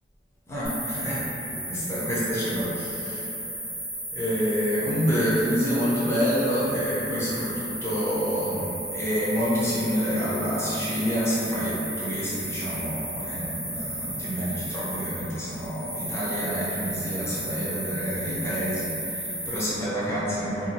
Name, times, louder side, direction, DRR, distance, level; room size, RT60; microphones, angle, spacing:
voice 1, 0.5-3.3 4.1-20.7, equal, 15° left, -10 dB, 0.7 m, -28 dB
sound 1, 0.6-19.6, right 1 dB, 65° right, 1.0 m, -34 dB
2.7 x 2.3 x 2.7 m, 3.0 s
head